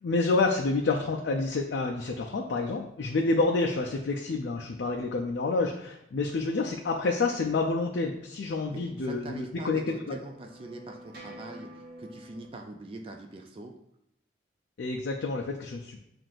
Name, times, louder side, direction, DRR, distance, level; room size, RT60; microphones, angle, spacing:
voice 1, 0.0-10.2 14.8-16.0, left 3 dB, 65° left, 0 dB, 0.4 m, -28 dB
voice 2, 8.7-13.8, right 2 dB, 30° right, 3 dB, 0.3 m, -43 dB
sound 1, 8.9-12.5, right 1 dB, 55° right, 0.9 m, -49 dB
7.5 x 2.5 x 2.5 m, 0.80 s
head